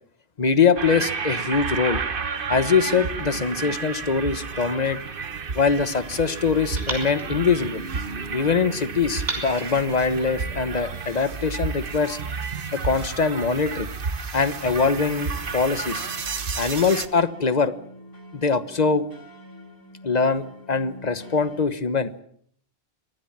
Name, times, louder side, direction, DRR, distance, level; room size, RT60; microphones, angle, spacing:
voice 1, 0.4-2.0 2.5-5.0 5.5-7.8 8.3-12.2 12.7-13.9 14.3-16.0 16.6-17.7 18.3-19.0 20.0-22.2, left 5 dB, 40° left, 13 dB, 1.3 m, -23 dB
sound 1, 0.8-17.1, right 5 dB, 55° right, 1.3 m, -31 dB
sound 2, 6.8-8.4 9.2-10.8, right 2 dB, 40° right, 6.4 m, -38 dB
sound 3, 15.2-21.7, left 1 dB, 20° left, 2.4 m, -46 dB
24.0 x 19.0 x 7.4 m, 0.64 s
omnidirectional pair, 1.1 m